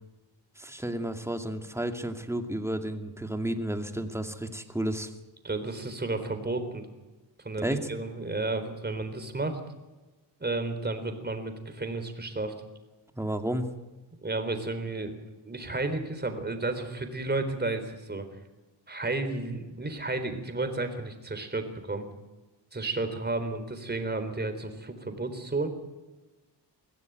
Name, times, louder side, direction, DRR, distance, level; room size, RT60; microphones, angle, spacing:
voice 1, 0.6-5.1 7.6-7.8 13.2-13.7, right 1 dB, 5° right, 6 dB, 2.4 m, -32 dB
voice 2, 5.4-6.9 7.4-9.6 10.4-12.5 14.2-15.2 15.5-18.3 18.9-22.0 22.7-25.7, right 2 dB, 25° right, 8 dB, 3.9 m, -32 dB
22.0 x 15.5 x 9.3 m, 1.1 s
cardioid pair, 95°, 43 cm